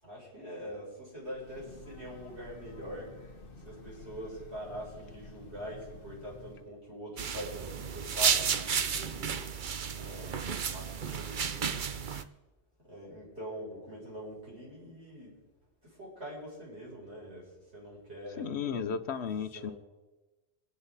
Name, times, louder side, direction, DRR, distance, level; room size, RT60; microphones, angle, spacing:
voice 1, 0.0-3.3 3.6-9.4 9.9-10.4 10.7-11.9 12.9-15.3 15.8-18.5 19.5-19.7, equal, 80° right, -7 dB, 7.6 m, -44 dB
Breathing / Train, 1.2-6.8, left 3 dB, 55° left, 1.3 m, -50 dB
sound 1, 7.2-12.2, right 6 dB, 50° right, 0.9 m, -32 dB
voice 2, 18.4-19.7, left 6 dB, 80° left, 11 dB, 1.1 m, -34 dB
28.0 x 10.0 x 4.1 m, 1.1 s
omnidirectional pair, 1.1 m